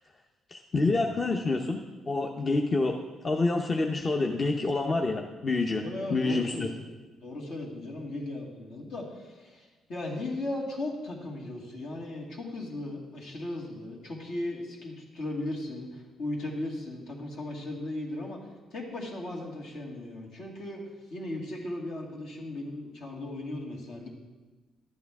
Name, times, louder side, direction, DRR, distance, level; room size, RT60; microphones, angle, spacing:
voice 1, 0.5-1.8 2.1-3.0 3.2-5.8 6.1-6.7, left 3 dB, 35° left, 2 dB, 0.7 m, -27 dB
voice 2, 5.8-6.8 7.2-18.4 18.7-20.8 21.1-24.1, left 1 dB, 70° left, -3 dB, 2.3 m, -37 dB
11.5 x 8.6 x 3.6 m, 1.2 s
cardioid pair, 90°, 0 cm